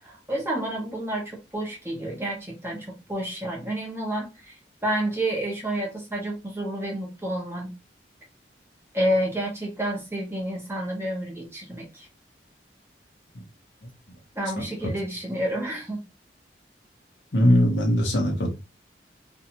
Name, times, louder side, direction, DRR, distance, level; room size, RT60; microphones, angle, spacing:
voice 1, 0.0-4.6 4.8-7.7 8.9-12.1 14.3-16.0, right 1 dB, 15° right, 0.8 m, -29 dB
voice 2, 17.3-18.5, equal, 80° left, 0.8 m, -21 dB
2.6 x 2.3 x 2.8 m
head